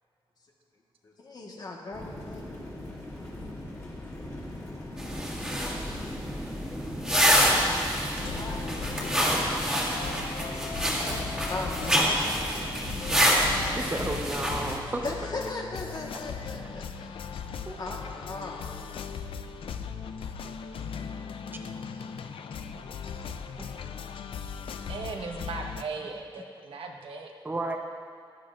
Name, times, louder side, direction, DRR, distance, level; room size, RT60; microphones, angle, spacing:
voice 1, 1.0-2.4 8.3-9.8 11.5-12.7 15.0-17.2 17.8-18.7 21.2-21.4 21.7-21.9 23.1-23.2, left 2 dB, 50° left, -1 dB, 1.4 m, -38 dB
sound 1, 1.9-9.8, left 1 dB, 30° left, 2.6 m, -40 dB
sound 2, 5.0-14.8, equal, 5° right, 1.9 m, -27 dB
sound 3, 8.1-25.8, left 6 dB, 85° left, 0.5 m, -38 dB
voice 2, 13.7-15.0 17.7-18.1 23.6-23.7 27.4-27.8, right 2 dB, 20° right, 3 dB, 0.9 m, -33 dB
voice 3, 24.9-27.3, right 4 dB, 85° right, 2 dB, 1.1 m, -37 dB
16.0 x 11.0 x 2.5 m, 2.3 s
wide cardioid pair, 150°, 9 cm